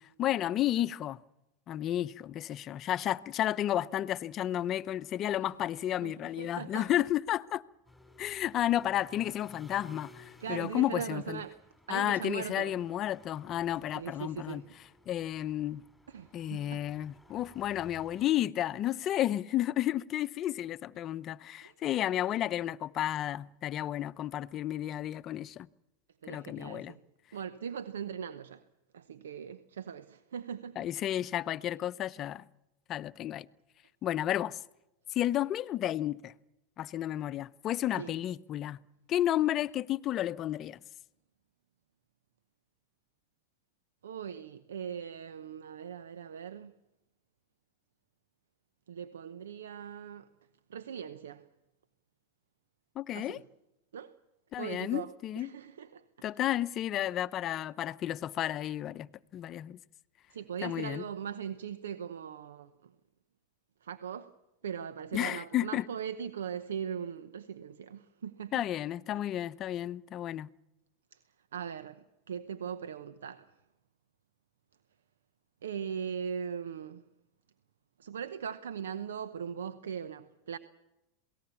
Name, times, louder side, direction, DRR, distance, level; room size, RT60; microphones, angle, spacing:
voice 1, 0.2-1.2 1.7-7.6 8.2-11.4 11.9-14.6 15.1-15.8 16.3-25.7 26.3-26.9 30.8-32.5 32.9-33.5 34.0-34.6 35.1-36.3 36.8-38.8 39.1-40.8 53.0-53.4 54.5-55.5 56.2-59.8 60.6-61.0 65.1-65.9 68.5-70.5, left 12 dB, 40° left, 0.7 m, -32 dB
voice 2, 6.0-7.0 10.4-11.6 11.9-12.7 13.9-14.7 16.1-16.8 21.6-21.7 26.2-27.0 27.3-28.6 28.9-30.8 38.0-38.2 44.0-46.7 48.9-50.3 50.7-51.4 53.1-53.4 53.9-54.1 54.6-56.0 60.3-62.9 63.8-64.3 64.6-68.5 71.1-71.2 71.5-73.5 75.6-77.0 78.0-80.6, right 7 dB, 80° right, 0.9 m, -40 dB
sound 1, 7.8-18.2, left 1 dB, 5° left, 3.6 m, -58 dB
27.5 x 18.5 x 7.1 m
hypercardioid pair, 95°, 0 cm